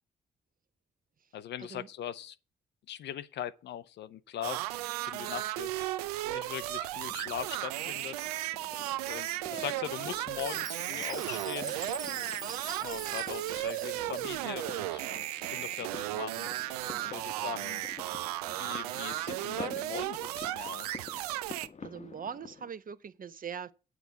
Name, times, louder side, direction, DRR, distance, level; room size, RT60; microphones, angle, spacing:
voice 1, 1.3-2.4 2.9-4.6 5.1-5.9 6.2-8.5 9.1-11.7 12.8-15.0 15.5-16.8 17.1-17.8 18.5-21.0, left 10 dB, 65° left, 0.7 m, -41 dB
sound 1, 4.4-21.7, right 15 dB, 90° right, 0.4 m, -35 dB
sound 2, 7.0-22.7, left 5 dB, 35° left, 1.0 m, -50 dB
Chime, 10.3-14.6, right 3 dB, 20° right, 0.6 m, -43 dB
voice 2, 16.8-17.2 21.8-23.7, right 7 dB, 45° right, 1.0 m, -42 dB
9.1 x 6.1 x 7.4 m
hypercardioid pair, 40°, 19 cm